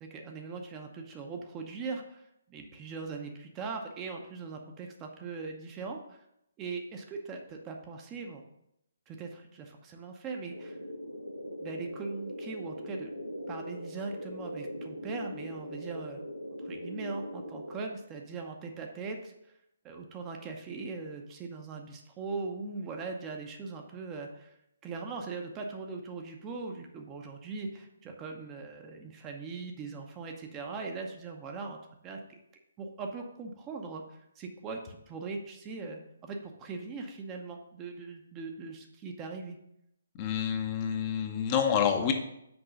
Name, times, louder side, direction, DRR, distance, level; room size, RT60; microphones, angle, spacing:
voice 1, 0.0-6.2 6.6-8.4 9.1-10.8 11.6-13.1 13.5-16.2 16.6-19.3 19.8-24.6 24.8-31.8 32.0-32.4 32.8-39.6, right 4 dB, 20° right, 2 dB, 0.8 m, -40 dB
sound 1, 10.5-17.8, equal, 90° left, 1.5 m, -41 dB
voice 2, 40.2-42.1, left 8 dB, 25° left, 4 dB, 0.8 m, -28 dB
6.1 x 4.7 x 6.2 m, 0.80 s
figure-of-eight pair, 135°, 0 cm